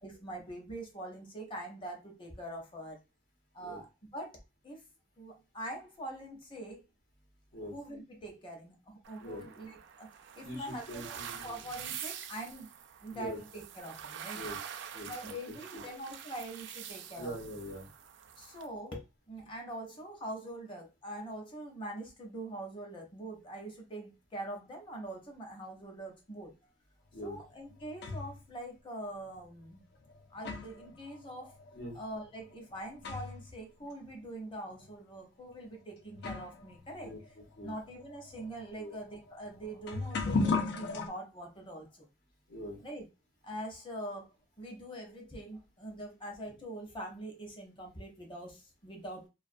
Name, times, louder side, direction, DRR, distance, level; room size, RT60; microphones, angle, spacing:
voice 1, 0.0-3.0 3.5-4.4 4.6-4.8 5.2-6.8 7.5-10.1 10.3-11.2 11.4-12.7 13.0-14.4 15.1-17.3 18.4-26.5 27.2-29.8 30.3-31.6 31.9-37.1 37.6-42.1 42.8-43.1 43.4-44.3 44.6-49.3, right 1 dB, 25° left, 2 dB, 0.7 m, -43 dB
sound 1, 9.0-18.7, right 9 dB, 65° right, 0.3 m, -46 dB
voice 2, 10.4-11.6 13.1-13.4 14.3-14.6 14.9-15.3 15.7-15.8 17.2-17.9 27.1-27.4 31.7-32.0 37.0-37.7 38.8-38.9 42.5-42.8, equal, 85° left, -6 dB, 1.1 m, -43 dB
sound 2, 27.3-28.4 29.3-29.4 30.1-33.5 33.8-33.9 34.7-34.9 35.7-35.8 36.1-41.1, left 3 dB, 60° left, 0.5 m, -37 dB
2.4 x 2.2 x 2.5 m, 0.26 s
head